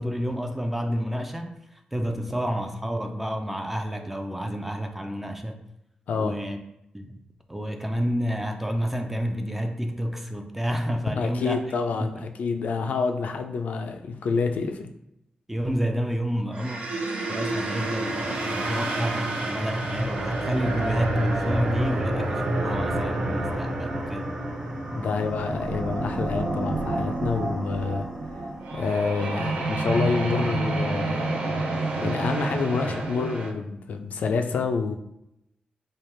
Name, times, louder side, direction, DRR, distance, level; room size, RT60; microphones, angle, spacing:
voice 1, 0.0-1.6 1.9-5.6 6.2-6.6 6.9-7.2 7.5-11.6 12.0-12.3 15.5-16.8 17.3-24.3, equal, 10° right, 5 dB, 0.3 m, -29 dB
voice 2, 6.1-6.4 11.2-14.9 24.9-28.1 28.7-35.0, left 4 dB, 80° left, 5 dB, 0.4 m, -28 dB
sound 1, 16.5-33.5, right 2 dB, 70° right, 0.6 m, -29 dB
sound 2, 17.4-28.6, equal, 25° right, 1.1 m, -33 dB
3.3 x 2.3 x 4.3 m, 0.81 s
wide cardioid pair, 140°, 3 cm